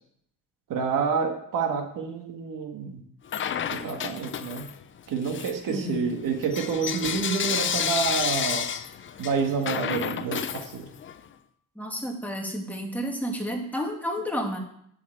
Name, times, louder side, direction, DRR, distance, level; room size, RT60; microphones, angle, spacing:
voice 1, 0.7-3.0 3.7-4.7 5.1-8.7 9.2-10.9, right 5 dB, 70° right, 4 dB, 1.8 m, -28 dB
Bell / Coin (dropping), 3.3-4.8 5.2-11.2, left 8 dB, 35° left, 0.6 m, -30 dB
voice 2, 5.7-6.1 11.8-14.6, equal, 5° left, 0 dB, 1.9 m, -31 dB
7.9 x 7.2 x 7.8 m, 0.70 s
cardioid pair, 135°, 33 cm